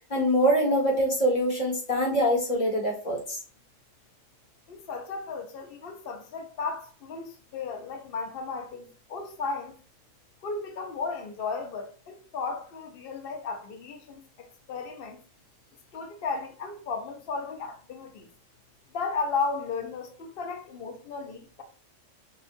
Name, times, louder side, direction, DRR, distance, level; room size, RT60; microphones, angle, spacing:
voice 1, 0.1-3.4, equal, 35° left, 1.5 m, -24 dB
voice 2, 4.7-9.8 10.4-15.2 15.9-18.3 18.9-21.6, left 4 dB, 50° left, 0.9 m, -34 dB
5.2 x 2.4 x 2.5 m
omnidirectional pair, 1.4 m